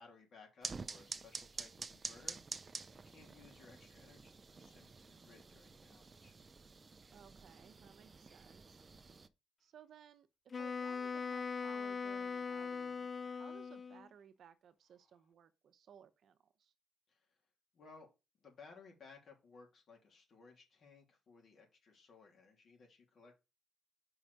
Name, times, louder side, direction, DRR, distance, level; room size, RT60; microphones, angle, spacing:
voice 1, 0.0-2.4 2.9-6.4 17.1-17.4 17.7-18.1 18.4-23.4, left 4 dB, 55° left, 3.0 m, -60 dB
sound 1, 0.6-9.3, right 4 dB, 30° right, 0.6 m, -49 dB
voice 2, 7.1-8.8 9.6-16.7, right 8 dB, 65° right, 0.8 m, -60 dB
Wind instrument woodwind instrument, 10.5-14.1, left 5 dB, 40° left, 0.4 m, -41 dB
5.5 x 4.8 x 5.0 m
cardioid pair, 90°, 0 cm